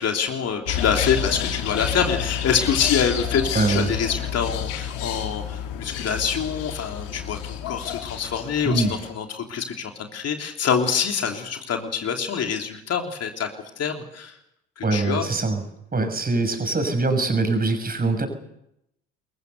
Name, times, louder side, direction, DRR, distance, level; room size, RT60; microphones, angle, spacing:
voice 1, 0.0-13.5 13.8-14.4 14.8-15.3, left 7 dB, 45° left, 3 dB, 3.3 m, -26 dB
sound 1, 0.7-9.1, left 10 dB, 65° left, 2.6 m, -29 dB
voice 2, 3.5-3.9 8.6-8.9 14.8-15.6 15.9-18.3, right 3 dB, 25° right, 7 dB, 6.4 m, -23 dB
26.0 x 23.0 x 6.8 m, 0.79 s
figure-of-eight pair, 55°, 35 cm